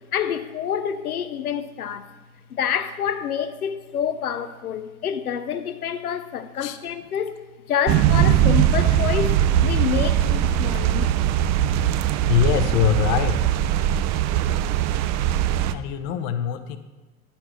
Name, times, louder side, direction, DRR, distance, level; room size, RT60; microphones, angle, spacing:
voice 1, 0.1-2.1 2.5-7.4 7.7-11.1, left 8 dB, 90° left, 0.5 m, -27 dB
sound 1, 7.9-15.7, right 10 dB, 40° right, 0.4 m, -20 dB
voice 2, 12.2-13.5 15.7-16.8, left 9 dB, 60° left, 0.8 m, -23 dB
9.7 x 4.3 x 6.2 m
figure-of-eight pair, 70°, 43 cm